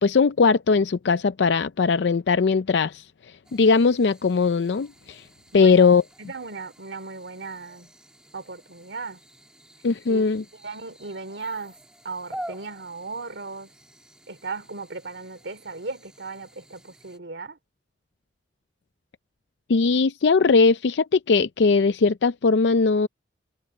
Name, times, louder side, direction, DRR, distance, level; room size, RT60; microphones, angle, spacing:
voice 1, 0.0-3.1 3.5-5.2 5.5-6.0 9.8-10.4 19.7-23.1, left 4 dB, 75° left, 0.5 m, -19 dB
sound 1, 3.4-17.2, equal, 5° right, 2.1 m, -47 dB
voice 2, 6.2-7.9 8.3-9.2 10.1-10.3 10.5-11.8 12.0-13.7 14.3-17.6, right 4 dB, 90° right, 2.8 m, -36 dB
head